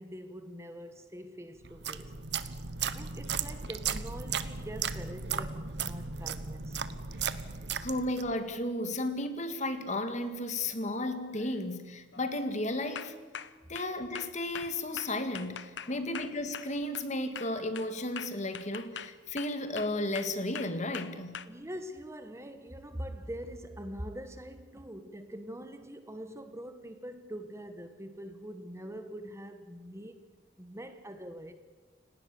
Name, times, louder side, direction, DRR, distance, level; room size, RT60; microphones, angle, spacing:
voice 1, 0.0-2.2 2.9-6.8 15.8-16.0 21.5-30.2 30.6-31.5, equal, 15° right, 1.3 m, -44 dB
sound 1, 1.6-8.4, right 6 dB, 60° right, 1.1 m, -36 dB
sound 2, 3.2-4.0 8.2-8.3 9.8-10.1 10.5-10.9 11.3-11.7 12.1-12.3 13.0-17.1 17.4-21.5, left 7 dB, 65° left, 1.0 m, -44 dB
voice 2, 7.8-13.2 13.7-21.4, left 1 dB, 40° left, 2.0 m, -34 dB
30.0 x 18.0 x 7.0 m
head